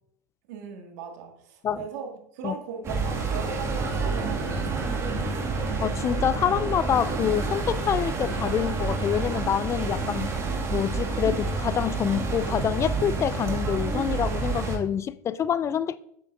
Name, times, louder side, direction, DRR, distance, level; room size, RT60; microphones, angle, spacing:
voice 1, 0.5-5.2, right 6 dB, 70° right, 1.9 m, -39 dB
sound 1, 2.8-14.8, right 3 dB, 30° right, 2.1 m, -28 dB
voice 2, 5.8-10.3 10.7-16.0, left 9 dB, 30° left, 0.4 m, -26 dB
8.3 x 7.5 x 2.6 m
hypercardioid pair, 90°, 9 cm